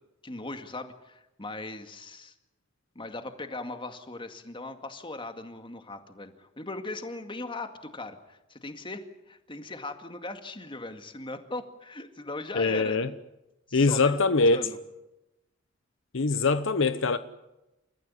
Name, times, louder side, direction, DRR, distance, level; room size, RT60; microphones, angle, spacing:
voice 1, 0.2-2.3 3.0-13.0 13.7-14.8, left 2 dB, 25° left, 2.1 m, -39 dB
voice 2, 12.5-13.1 13.7-14.6 16.1-17.2, left 3 dB, 65° left, 0.9 m, -23 dB
29.0 x 14.5 x 9.8 m
head